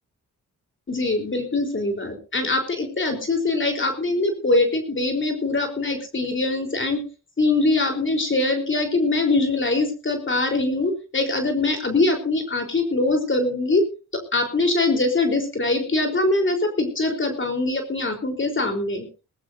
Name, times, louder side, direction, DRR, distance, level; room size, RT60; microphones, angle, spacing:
voice 1, 0.9-7.0 7.4-13.9 14.1-19.1, left 2 dB, 35° left, 4 dB, 3.9 m, -23 dB
19.5 x 17.5 x 2.7 m, 0.33 s
cardioid pair, 75°, 32 cm